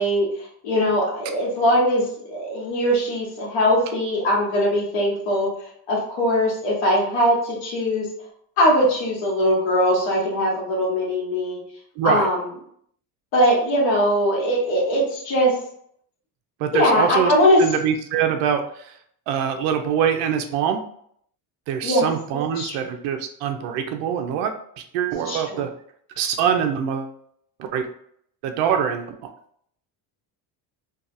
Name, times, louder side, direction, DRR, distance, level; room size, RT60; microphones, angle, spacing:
voice 1, 0.0-5.5 5.9-8.1 8.6-11.6 12.0-12.5 13.3-15.6 16.7-17.6 21.8-22.1 22.6-22.8 25.2-25.6, equal, 75° left, -4 dB, 1.1 m, -21 dB
voice 2, 12.0-12.3 16.6-17.3 17.6-19.0 19.3-20.8 21.7-25.7 26.2-27.1 27.6-27.9 28.4-29.2, right 8 dB, 75° right, 6 dB, 0.5 m, -24 dB
2.7 x 2.3 x 2.5 m, 0.66 s
supercardioid pair, 105°, 45 cm